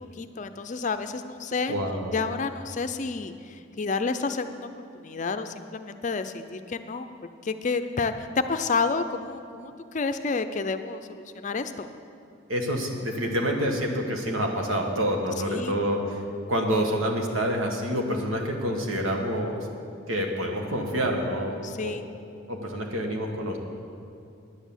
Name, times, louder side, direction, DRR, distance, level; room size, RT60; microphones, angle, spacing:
voice 1, 0.1-1.8 2.1-7.1 7.4-11.9 15.4-15.8 21.6-22.1, left 4 dB, 40° left, 9 dB, 0.5 m, -30 dB
voice 2, 1.7-2.2 12.5-16.0 16.5-19.6 20.1-21.9 22.5-23.6, equal, 85° right, 2 dB, 1.5 m, -27 dB
10.0 x 8.2 x 7.2 m, 2.5 s
head